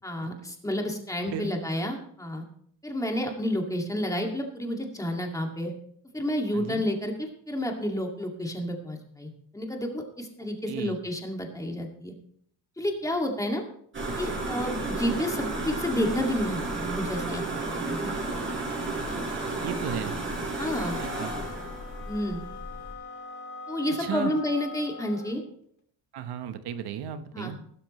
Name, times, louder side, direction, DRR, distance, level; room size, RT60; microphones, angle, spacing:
voice 1, 0.0-2.4 2.8-5.7 6.1-12.1 12.8-13.6 14.1-17.4 17.9-18.1 20.6-21.0 22.1-22.4 23.7-25.4 27.3-27.5, left 1 dB, 10° left, 1 dB, 2.2 m, -30 dB
voice 2, 6.5-6.8 10.7-11.0 19.6-20.2 21.0-21.3 24.0-24.3 26.1-27.6, right 9 dB, 85° right, 10 dB, 1.2 m, -35 dB
sound 1, 13.9-22.9, right 2 dB, 30° right, 4.8 m, -32 dB
sound 2, 20.7-25.4, left 4 dB, 45° left, 3.2 m, -42 dB
15.0 x 13.0 x 3.2 m, 0.64 s
cardioid pair, 120°, 39 cm